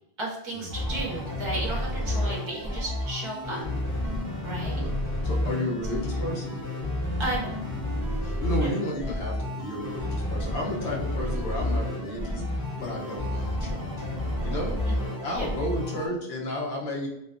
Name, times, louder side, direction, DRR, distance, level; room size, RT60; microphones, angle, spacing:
voice 1, 0.2-3.6 4.4-4.8 7.0-7.6 8.6-8.7 14.9-15.1 15.4-15.5, right 2 dB, 40° right, -2 dB, 0.4 m, -34 dB
sound 1, 0.7-16.1, left 1 dB, 20° left, 0.7 m, -30 dB
voice 2, 2.0-2.3 4.8-4.9 5.2-6.6 8.2-13.8 14.4-14.8 15.2-17.1, equal, 90° left, -2 dB, 1.0 m, -32 dB
sound 2, 6.9-15.8, left 1 dB, 55° left, 0.7 m, -49 dB
2.5 x 2.2 x 2.4 m, 0.79 s
omnidirectional pair, 1.1 m